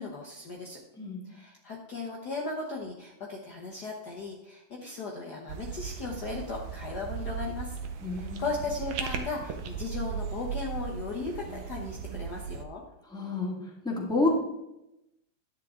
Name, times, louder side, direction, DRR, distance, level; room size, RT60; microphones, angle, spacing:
voice 1, 0.0-0.8 1.2-12.8, left 3 dB, 75° left, -1 dB, 0.9 m, -37 dB
sound 1, 5.5-12.6, right 6 dB, 80° right, 2.1 m, -38 dB
sound 2, 7.8-9.7, right 6 dB, 65° right, 1.3 m, -38 dB
voice 2, 8.0-8.4 13.1-13.5 13.8-14.3, left 3 dB, ahead, -3 dB, 1.3 m, -28 dB
11.0 x 8.4 x 3.7 m, 0.89 s
omnidirectional pair, 3.3 m